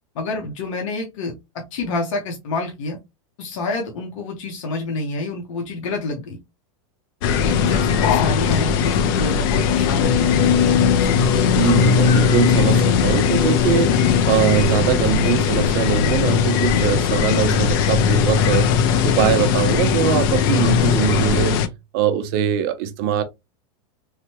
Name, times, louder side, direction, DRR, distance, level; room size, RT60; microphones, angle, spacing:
voice 1, 0.1-1.3 1.7-3.0 3.4-6.4 7.3-10.4 11.0-11.1, left 3 dB, 75° left, 0.9 m, -28 dB
sound 1, 7.2-21.7, left 7 dB, 45° left, 0.4 m, -18 dB
voice 2, 11.5-18.7 19.0-23.2, right 10 dB, 45° right, 0.5 m, -22 dB
3.2 x 2.1 x 2.9 m
supercardioid pair, 160°, 17 cm